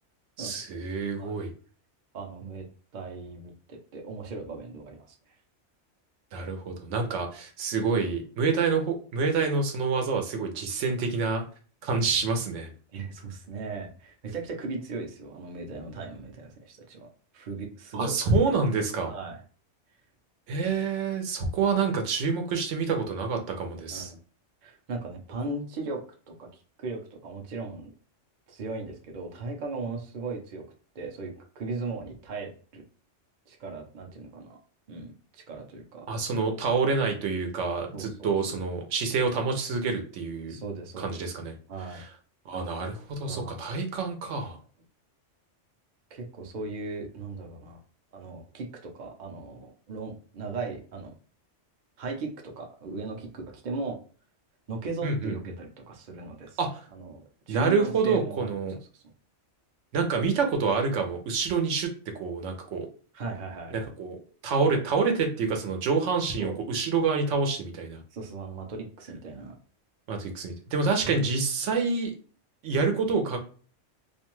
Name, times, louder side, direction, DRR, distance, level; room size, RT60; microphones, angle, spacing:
voice 1, 0.4-1.5 6.3-11.4 11.8-12.7 17.9-19.1 20.5-24.1 36.1-40.6 41.0-41.5 41.9-42.1 42.5-44.6 55.0-55.3 56.6-56.8 57.5-58.8 59.9-61.9 62.2-62.9 63.7-64.2 64.4-68.0 70.1-72.1 72.6-73.4, right 4 dB, 80° right, 4 dB, 1.0 m, -27 dB
voice 2, 2.1-2.7 2.9-5.1 12.9-17.1 17.3-18.4 19.1-19.4 23.9-24.2 24.6-26.0 26.3-27.9 28.5-30.6 30.9-32.8 33.5-34.6 34.9-36.1 37.9-38.6 40.5-41.2 41.7-42.0 43.2-43.6 46.1-47.8 48.1-51.1 52.0-54.0 54.7-56.6 56.9-58.5 58.9-59.0 63.1-63.7 66.4-66.6 68.1-69.6 71.2-71.3, right 3 dB, 50° right, 1 dB, 0.6 m, -37 dB
2.5 x 2.2 x 2.9 m, 0.41 s
omnidirectional pair, 1.2 m